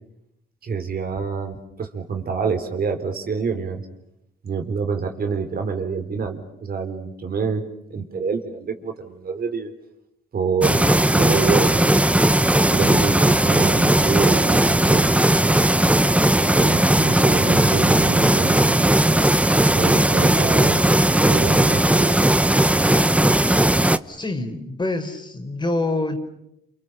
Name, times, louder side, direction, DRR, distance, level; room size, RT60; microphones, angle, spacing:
voice 1, 0.6-3.8 4.4-7.6 7.9-9.7 10.3-11.8 12.7-15.1 15.4-15.7 16.5-18.7 19.7-20.8 21.2-22.2, right 5 dB, 50° right, 5 dB, 4.2 m, -27 dB
sound 1, 10.6-24.0, right 1 dB, 5° right, 1.0 m, -17 dB
voice 2, 24.1-26.2, left 2 dB, 20° left, 6 dB, 4.4 m, -26 dB
29.5 x 28.5 x 6.8 m, 0.82 s
cardioid pair, 90°, 20 cm